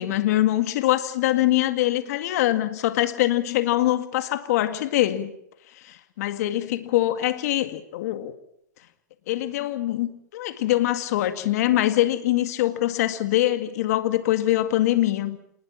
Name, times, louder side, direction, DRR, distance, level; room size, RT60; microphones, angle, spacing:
voice 1, 0.0-5.3 5.8-8.3 9.3-15.4, left 14 dB, 60° left, 10 dB, 2.0 m, -23 dB
28.0 x 20.0 x 7.3 m, 0.70 s
hypercardioid pair, 130°, 10 cm